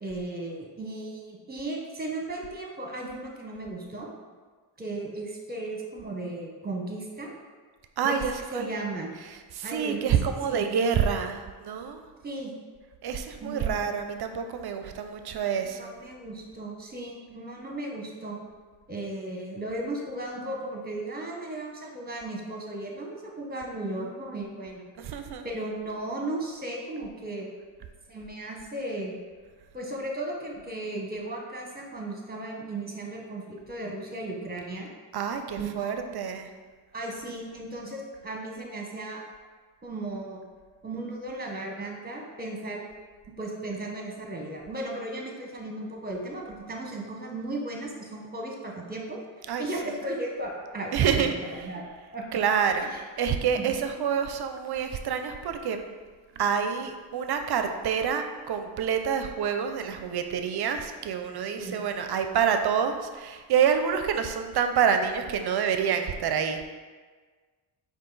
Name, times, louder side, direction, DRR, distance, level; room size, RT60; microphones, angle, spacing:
voice 1, 0.0-4.1 4.8-7.3 8.0-8.2 8.5-9.1 9.6-10.1 10.4-10.6 12.2-12.5 13.4-13.8 15.6-18.4 18.9-24.8 25.4-27.5 28.1-29.1 29.7-34.9 35.6-36.0 36.9-39.2 39.8-40.4 40.8-42.8 43.4-49.2 49.6-51.8 52.1-52.3 52.8-53.0 53.5-53.7 61.6-61.8, right 2 dB, 20° right, 0 dB, 1.1 m, -35 dB
voice 2, 8.0-8.8 9.5-12.0 13.0-15.9 25.0-25.5 35.1-36.5 49.5-49.7 50.9-51.4 52.3-52.9 53.2-55.8 56.4-66.6, right 7 dB, 55° right, 7 dB, 0.5 m, -27 dB
4.8 x 2.6 x 3.9 m, 1.5 s
supercardioid pair, 60°, 48 cm